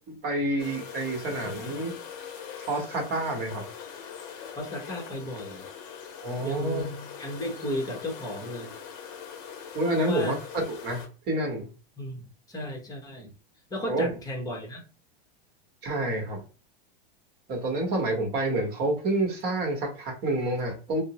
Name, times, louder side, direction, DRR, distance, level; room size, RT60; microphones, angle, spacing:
voice 1, 0.2-2.0 2.7-3.6 6.2-6.8 9.7-11.7 13.9-14.1 15.8-16.4 17.5-21.0, right 2 dB, 35° right, 1.1 m, -28 dB
sound 1, 0.6-11.1, left 7 dB, 45° left, 0.7 m, -42 dB
voice 2, 4.5-5.7 6.4-8.7 10.0-10.4 12.0-13.3 13.7-14.8, left 1 dB, 10° left, 0.9 m, -34 dB
4.2 x 2.0 x 2.9 m
supercardioid pair, 145°, 29 cm